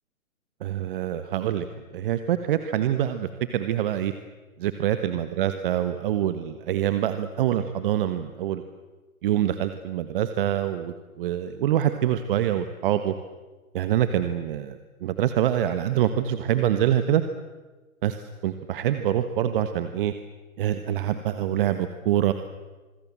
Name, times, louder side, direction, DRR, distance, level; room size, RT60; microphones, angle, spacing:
voice 1, 0.6-1.7 1.9-4.1 4.6-8.6 9.2-13.1 13.7-17.2 18.0-20.1 20.6-22.3, right 11 dB, 40° right, 10 dB, 1.3 m, -25 dB
26.0 x 22.0 x 7.5 m, 1.2 s
hypercardioid pair, 140°, 43 cm